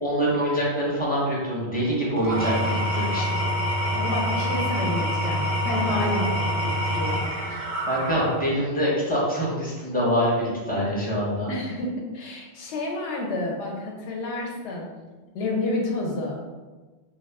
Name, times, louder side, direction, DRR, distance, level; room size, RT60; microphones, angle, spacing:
voice 1, 0.0-3.2 5.9-6.0 7.9-11.5, equal, 10° left, -6 dB, 0.5 m, -25 dB
Engine / Tools, 2.2-8.6, equal, 55° right, 0.4 m, -26 dB
voice 2, 3.9-7.7 11.5-14.9 15.3-16.4, left 2 dB, 90° left, 0 dB, 0.9 m, -30 dB
2.3 x 2.1 x 3.4 m, 1.3 s
omnidirectional pair, 1.1 m